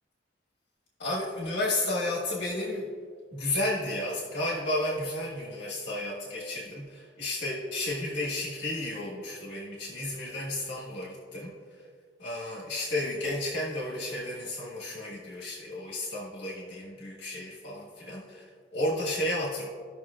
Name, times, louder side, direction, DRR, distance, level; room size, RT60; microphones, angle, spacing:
voice 1, 1.0-2.8 3.3-11.5 12.2-19.7, left 1 dB, 70° left, -5 dB, 1.5 m, -32 dB
15.5 x 5.9 x 2.4 m, 2.1 s
head